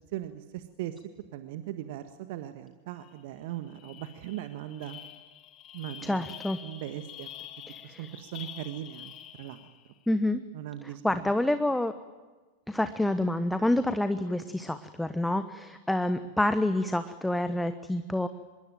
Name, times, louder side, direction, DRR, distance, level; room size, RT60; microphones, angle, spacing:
voice 1, 0.1-1.0 1.3-5.0 5.7-6.3 6.6-7.3 7.8-9.7 10.5-11.3, right 13 dB, 50° right, 10 dB, 1.5 m, -39 dB
sound 1, 3.1-3.2 3.5-9.9, left 11 dB, 35° left, 1.7 m, -47 dB
voice 2, 6.0-6.6 7.9-8.0 10.1-10.4 10.8-11.9 12.7-18.3, left 1 dB, 5° left, 11 dB, 1.2 m, -28 dB
25.5 x 22.0 x 9.3 m, 1.3 s
figure-of-eight pair, 90°, 0 cm